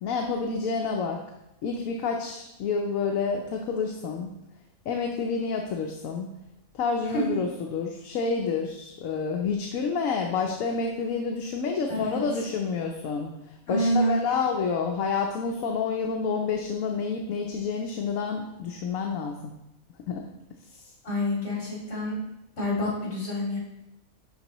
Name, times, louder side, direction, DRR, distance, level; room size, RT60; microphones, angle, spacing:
voice 1, 0.0-1.2 1.6-4.3 4.9-6.3 6.7-19.5 20.1-20.3 20.7-20.8, left 5 dB, 75° left, 2 dB, 1.1 m, -29 dB
voice 2, 11.9-12.2 13.7-14.2 21.0-22.1 22.6-23.6, equal, 50° left, -5 dB, 2.7 m, -27 dB
11.0 x 4.1 x 3.0 m, 0.89 s
omnidirectional pair, 1.5 m